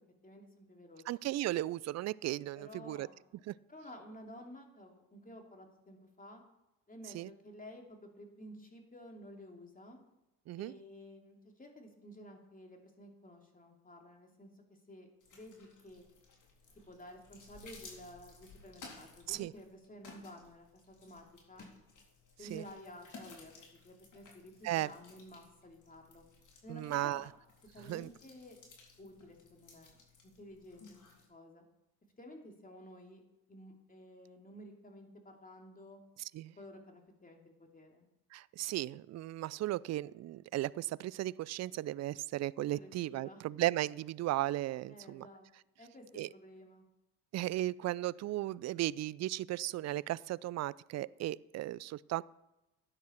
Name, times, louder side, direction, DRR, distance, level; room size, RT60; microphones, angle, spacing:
voice 1, 0.2-1.3 2.5-3.2 3.7-6.4 6.9-10.0 10.6-16.0 16.9-21.7 22.4-26.2 26.6-27.3 27.7-28.6 29.0-30.0 30.4-31.6 32.2-33.2 33.5-36.0 36.6-38.1 42.7-43.4 44.9-45.5 45.8-46.8, equal, 20° left, 2 dB, 2.9 m, -53 dB
voice 2, 1.1-3.1 3.5-3.6 7.1-7.3 10.5-10.8 19.3-19.5 22.5-22.6 24.6-24.9 26.7-27.3 27.9-28.1 36.3-36.5 38.3-45.3 46.2-46.3 47.3-52.2, right 15 dB, 40° right, 22 dB, 0.4 m, -36 dB
sound 1, 15.2-31.3, left 3 dB, 45° left, 3.8 m, -57 dB
13.0 x 10.0 x 4.5 m, 0.95 s
hypercardioid pair, 65°, 43 cm